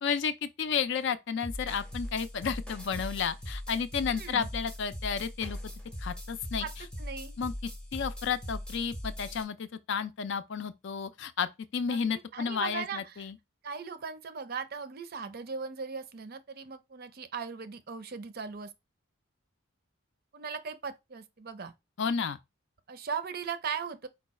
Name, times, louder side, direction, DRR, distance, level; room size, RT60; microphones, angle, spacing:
voice 1, 0.0-5.6 6.0-6.7 7.4-7.5 7.9-13.4 22.0-22.4, left 6 dB, 55° left, 0.4 m, -32 dB
sound 1, 1.4-9.4, equal, 5° left, 0.6 m, -40 dB
voice 2, 4.1-4.5 6.6-6.7 7.0-7.4 11.9-13.3 13.6-18.7 20.3-21.7 22.9-24.1, right 5 dB, 45° right, 0.5 m, -38 dB
4.5 x 2.3 x 4.1 m
head